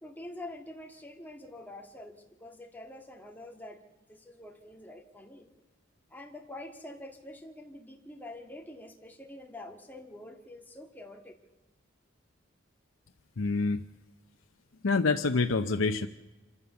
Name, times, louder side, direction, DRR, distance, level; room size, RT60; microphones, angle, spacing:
voice 1, 0.0-5.5 6.1-11.4, left 1 dB, 10° left, 2 dB, 2.0 m, -46 dB
voice 2, 13.4-13.8 14.8-16.1, left 3 dB, 85° left, 6 dB, 0.7 m, -26 dB
26.0 x 14.5 x 7.0 m, 1.1 s
head